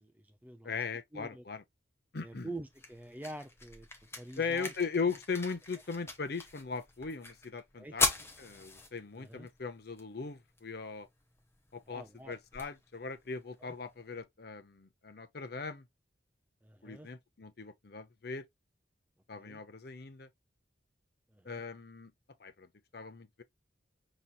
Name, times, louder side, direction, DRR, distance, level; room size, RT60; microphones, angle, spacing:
voice 1, 0.0-0.8 1.1-1.4 2.2-3.9 4.2-4.7 5.1-5.2 7.7-8.0 9.1-9.5 11.9-12.4 13.6-13.7 16.6-17.1 19.3-19.6 21.3-21.6, right 2 dB, 10° right, 0.5 m, -47 dB
voice 2, 0.6-1.6 2.1-2.5 4.4-8.1 8.4-11.1 11.7-15.9 16.8-18.5 19.3-20.3 21.4-22.1 22.4-22.7 22.9-23.4, left 5 dB, 55° left, 0.7 m, -39 dB
sound 1, 2.2-14.2, left 3 dB, 15° left, 0.8 m, -41 dB
5.5 x 3.0 x 2.3 m
head